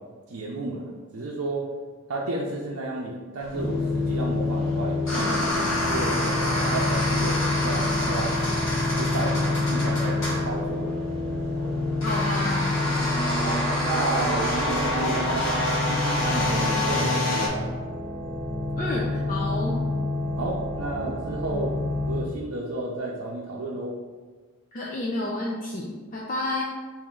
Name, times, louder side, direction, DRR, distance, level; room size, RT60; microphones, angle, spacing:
voice 1, 0.3-1.7 2.1-8.4 8.9-10.9 13.2-15.2 15.8-17.7 20.4-21.8 22.1-24.0, right 2 dB, 90° right, -3 dB, 0.6 m, -32 dB
sound 1, 3.4-17.5, left 1 dB, 60° left, 1.0 m, -28 dB
sound 2, 3.5-22.2, left 2 dB, 15° left, 1.3 m, -28 dB
voice 2, 12.0-12.8 18.8-19.8 24.7-26.6, left 2 dB, 40° left, -4 dB, 0.4 m, -30 dB
4.2 x 2.6 x 3.7 m, 1.4 s
head